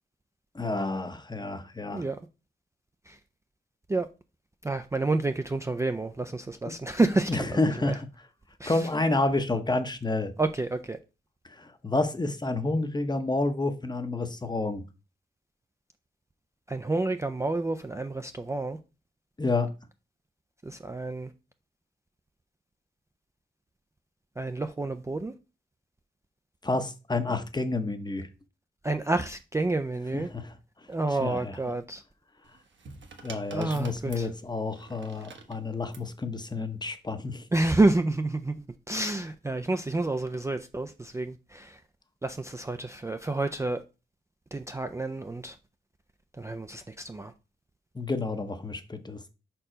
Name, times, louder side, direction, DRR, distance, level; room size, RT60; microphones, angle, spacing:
voice 1, 0.5-2.0 6.6-6.7 7.3-8.1 8.7-10.3 11.4-14.8 19.4-19.7 26.6-28.3 30.1-31.6 33.2-37.5 47.9-49.3, left 2 dB, 20° left, 0.8 m, -29 dB
voice 2, 4.6-7.5 7.9-8.0 8.6-8.8 10.4-11.0 16.7-18.8 20.6-21.3 24.4-25.3 28.8-30.3 30.9-32.0 33.5-34.3 37.5-41.8 42.2-43.8 44.5-45.6 46.4-47.3, right 2 dB, 15° right, 0.4 m, -29 dB
sound 1, 32.4-36.1 37.2-37.5, right 4 dB, 75° right, 1.2 m, -48 dB
5.4 x 4.5 x 5.0 m
wide cardioid pair, 115°, 19 cm